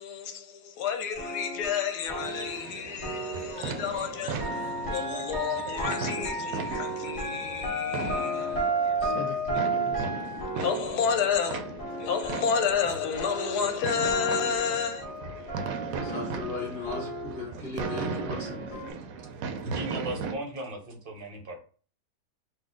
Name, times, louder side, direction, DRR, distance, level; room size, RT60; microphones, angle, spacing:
voice 1, 0.0-8.7 9.0-10.1 10.6-11.6 12.0-15.1 16.0-16.2, left 7 dB, 80° left, 1.3 m, -31 dB
sound 1, 1.1-13.8 14.1-18.9, right 1 dB, 20° left, 1.7 m, -34 dB
sound 2, 2.1-20.3, right 5 dB, 70° right, 0.9 m, -37 dB
voice 2, 16.0-18.9, left 3 dB, 40° left, 1.3 m, -37 dB
voice 3, 19.6-21.6, right 1 dB, 45° right, 0.8 m, -36 dB
4.0 x 2.6 x 3.7 m
omnidirectional pair, 1.7 m